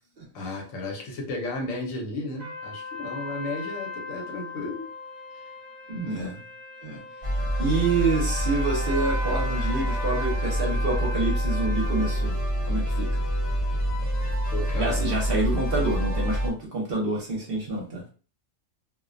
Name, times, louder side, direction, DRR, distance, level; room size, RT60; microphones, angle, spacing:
voice 1, 0.3-4.9 6.2-6.4 14.5-15.1, left 2 dB, 85° left, 1.1 m, -34 dB
sound 1, 2.4-12.3, left 2 dB, 20° right, 1.1 m, -38 dB
voice 2, 5.9-6.4 6.8-7.0 7.6-12.4 12.7-13.2 14.7-18.1, right 3 dB, 50° right, 0.8 m, -27 dB
sound 2, 7.2-16.5, equal, 40° left, 0.7 m, -26 dB
2.4 x 2.1 x 2.5 m
omnidirectional pair, 1.3 m